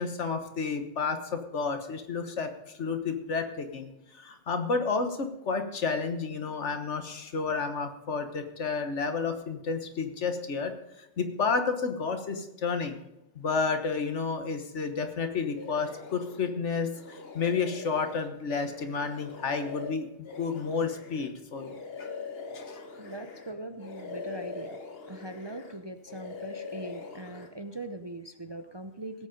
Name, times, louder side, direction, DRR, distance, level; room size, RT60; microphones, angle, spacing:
voice 1, 0.0-13.0 13.3-22.1 22.5-22.8, left 5 dB, 75° left, 7 dB, 1.6 m, -31 dB
sound 1, 15.6-16.5 16.9-23.5 23.8-25.8 26.1-27.5, left 4 dB, 55° left, 1.5 m, -42 dB
voice 2, 23.0-24.8 25.1-29.3, right 1 dB, 30° right, 7 dB, 0.6 m, -41 dB
17.5 x 8.4 x 5.3 m, 0.87 s
omnidirectional pair, 1.2 m